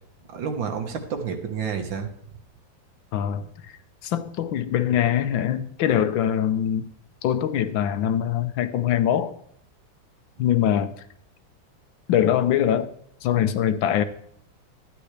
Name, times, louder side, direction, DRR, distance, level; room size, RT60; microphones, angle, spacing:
voice 1, 0.3-2.4 10.4-10.5, right 6 dB, 85° right, 5 dB, 2.1 m, -30 dB
voice 2, 3.1-3.8 4.0-6.9 7.2-9.3 10.4-10.9 12.1-12.9 13.2-14.0, left 10 dB, 90° left, 10 dB, 1.6 m, -23 dB
12.5 x 10.0 x 3.3 m, 0.69 s
omnidirectional pair, 2.0 m